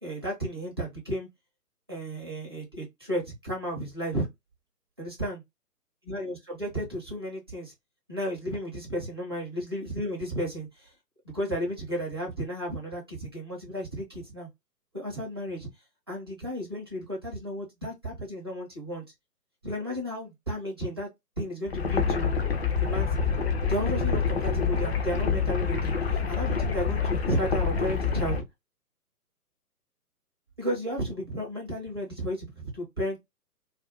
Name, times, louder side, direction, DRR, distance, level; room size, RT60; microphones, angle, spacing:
voice 1, 0.0-1.3 1.9-4.3 5.0-5.4 6.0-7.7 8.1-10.9 11.3-14.5 14.9-15.7 16.1-19.0 19.6-21.1 21.4-22.3 22.8-23.1 23.7-28.4 30.6-33.2, equal, 15° right, 0.5 m, -33 dB
sound 1, 21.7-28.4, left 5 dB, 40° left, 0.6 m, -27 dB
2.5 x 2.2 x 2.5 m
figure-of-eight pair, 135°, 48 cm